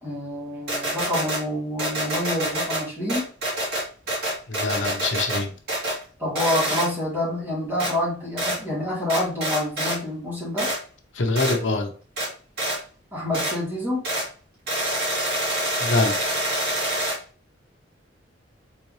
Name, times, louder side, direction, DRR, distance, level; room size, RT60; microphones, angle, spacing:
voice 1, 0.0-3.3 6.2-10.7 13.1-14.1, left 1 dB, 10° right, -7 dB, 2.6 m, -27 dB
sound 1, 0.7-1.4 1.8-2.8 3.1-5.4 5.7-6.0 6.3-6.9 7.8-7.9 8.4-8.6 9.1-10.0 10.6-10.8 11.3-11.6 12.2-12.3 12.6-12.8 13.3-13.5 14.0-14.3 14.7-17.2, right 1 dB, 60° right, 2.4 m, -26 dB
voice 2, 4.5-5.5 11.1-11.9 15.8-16.2, left 3 dB, 80° left, 3 dB, 0.9 m, -24 dB
4.2 x 4.0 x 3.1 m, 0.40 s
head